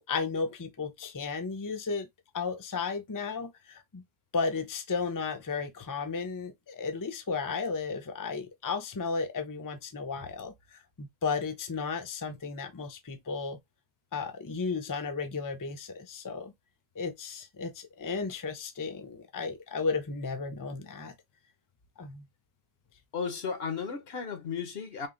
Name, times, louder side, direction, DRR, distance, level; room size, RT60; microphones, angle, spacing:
voice 1, 0.0-2.1 2.3-4.0 4.3-10.5 11.0-13.6 14.1-16.5 17.0-21.1 22.0-22.2, left 4 dB, 25° left, 0.5 m, -34 dB
voice 2, 23.1-25.1, left 6 dB, 70° left, 1.1 m, -34 dB
3.6 x 2.6 x 3.7 m
omnidirectional pair, 1.1 m